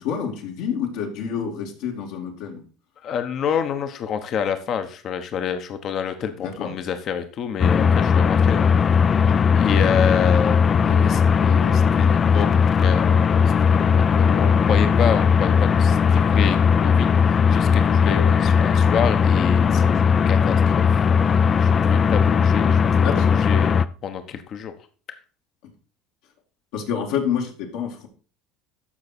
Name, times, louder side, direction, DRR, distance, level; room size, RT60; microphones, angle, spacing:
voice 1, 0.0-2.6 6.4-6.7 23.0-23.3 26.7-28.1, left 7 dB, 75° left, 0 dB, 2.4 m, -28 dB
voice 2, 3.0-8.7 9.5-12.5 12.8-13.4 13.7-20.8 21.2-24.7 25.1-25.2, left 7 dB, 50° left, 8 dB, 1.1 m, -28 dB
sound 1, 7.6-23.9, left 6 dB, 30° left, 0.5 m, -18 dB
13.5 x 4.8 x 4.3 m, 0.37 s
supercardioid pair, 105°, 0 cm